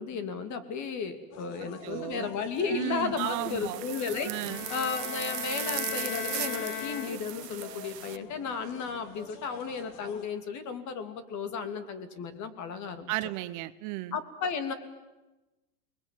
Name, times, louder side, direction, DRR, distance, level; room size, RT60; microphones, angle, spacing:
voice 1, 0.0-4.3 4.7-13.1 14.1-14.7, left 5 dB, 35° left, 9 dB, 2.8 m, -34 dB
sound 1, 1.3-10.3, left 7 dB, 60° left, 3.2 m, -47 dB
voice 2, 1.8-2.3 2.7-3.8 4.2-4.7 13.1-14.2, right 17 dB, 40° right, 13 dB, 0.8 m, -34 dB
sound 2, 3.2-8.2, right 15 dB, 85° right, 1.1 m, -38 dB
Bowed string instrument, 4.4-7.6, left 12 dB, 80° left, 1.4 m, -38 dB
29.0 x 21.0 x 9.3 m, 1.1 s
supercardioid pair, 130°, 47 cm